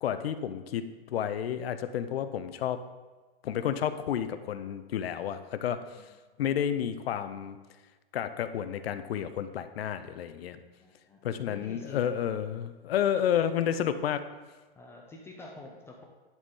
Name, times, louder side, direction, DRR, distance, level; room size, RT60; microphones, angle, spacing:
voice 1, 0.0-2.8 3.4-5.8 6.4-7.6 8.1-10.6 11.2-14.3, left 9 dB, 80° left, 11 dB, 0.6 m, -31 dB
voice 2, 10.8-12.1 13.2-13.5 14.8-16.0, left 2 dB, 10° left, 0 dB, 0.4 m, -48 dB
11.0 x 4.2 x 3.7 m, 1.3 s
hypercardioid pair, 145°, 30 cm